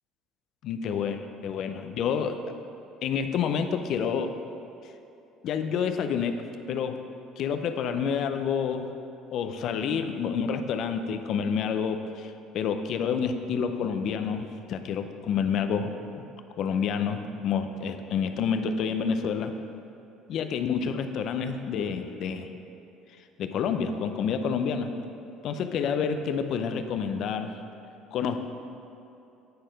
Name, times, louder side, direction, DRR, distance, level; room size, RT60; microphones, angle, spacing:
voice 1, 0.6-1.2 1.4-2.4 3.0-4.3 5.4-6.4 6.7-7.0 7.4-8.9 9.3-15.9 16.6-19.5 20.3-22.5 23.4-24.9 25.4-27.6 28.1-28.4, left 6 dB, 60° left, 8 dB, 0.5 m, -28 dB
9.5 x 4.4 x 5.2 m, 2.7 s
supercardioid pair, 90°, 0 cm